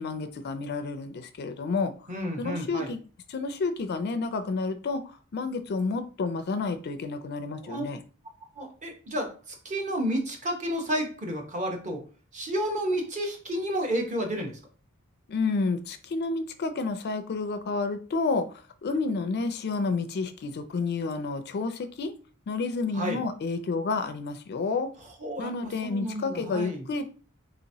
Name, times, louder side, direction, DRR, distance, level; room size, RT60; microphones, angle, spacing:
voice 1, 0.0-1.9 2.4-3.0 3.3-8.0 15.3-22.1 22.5-24.9 25.4-27.1, left 3 dB, 50° left, 10 dB, 0.4 m, -30 dB
voice 2, 2.1-2.9 7.6-7.8 8.6-12.0 12.3-14.6 22.9-23.2 25.2-26.8, equal, 35° right, 2 dB, 0.8 m, -31 dB
4.0 x 2.9 x 2.7 m, 0.37 s
head